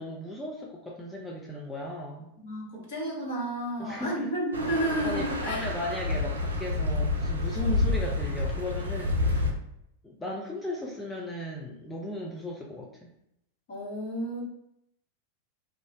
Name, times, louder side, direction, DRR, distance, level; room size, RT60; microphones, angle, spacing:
voice 1, 0.0-2.3 3.8-4.4 5.0-9.6 10.0-13.1, left 1 dB, 10° left, -3 dB, 0.5 m, -36 dB
voice 2, 2.4-5.7 13.7-14.4, right 1 dB, 50° left, -4 dB, 1.1 m, -31 dB
sound 1, 4.5-9.5, left 2 dB, 80° right, 0.4 m, -28 dB
2.4 x 2.0 x 3.7 m, 0.77 s
figure-of-eight pair, 90°, 0 cm